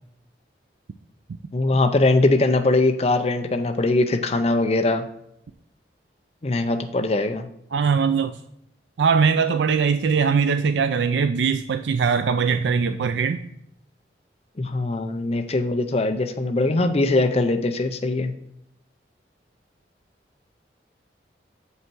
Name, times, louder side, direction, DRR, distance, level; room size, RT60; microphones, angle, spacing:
voice 1, 1.5-5.0 6.4-7.5 14.6-18.3, left 2 dB, 35° left, 5 dB, 0.5 m, -21 dB
voice 2, 7.7-8.4 9.0-13.4, right 5 dB, 85° right, 9 dB, 0.4 m, -21 dB
7.2 x 5.6 x 4.6 m, 0.77 s
head